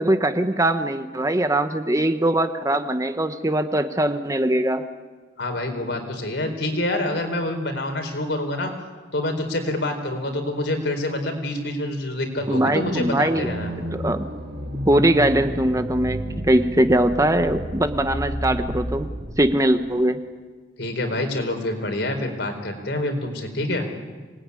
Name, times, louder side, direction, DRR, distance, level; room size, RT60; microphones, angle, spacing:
voice 1, 0.0-4.8 12.5-13.5 13.9-14.3 14.9-19.1 19.4-20.2, right 1 dB, 20° right, 9 dB, 1.0 m, -21 dB
voice 2, 5.4-8.7 9.1-13.7 20.8-23.9, left 1 dB, 65° left, 5 dB, 4.5 m, -26 dB
sound 1, 12.4-19.4, equal, 75° right, 4.5 m, -31 dB
26.0 x 20.0 x 9.8 m, 1.4 s
head